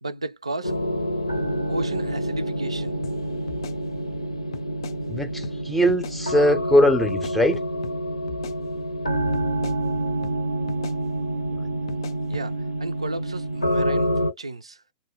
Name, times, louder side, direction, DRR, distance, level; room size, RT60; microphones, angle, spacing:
voice 1, 0.0-0.7 1.7-2.9 12.3-14.8, right 2 dB, 80° right, 0.4 m, -33 dB
sound 1, 0.6-14.3, right 1 dB, 85° left, 0.7 m, -27 dB
sound 2, 3.0-3.2 3.5-4.2 4.5-5.0 5.4-5.6 5.9-6.2 7.1-8.0 8.3-9.0 9.3-9.8 10.2-10.4 10.7-11.0 11.9-12.5, left 6 dB, 55° left, 0.4 m, -39 dB
voice 2, 5.1-7.6, equal, 5° left, 0.5 m, -20 dB
2.2 x 2.1 x 3.0 m
figure-of-eight pair, 105°, 3 cm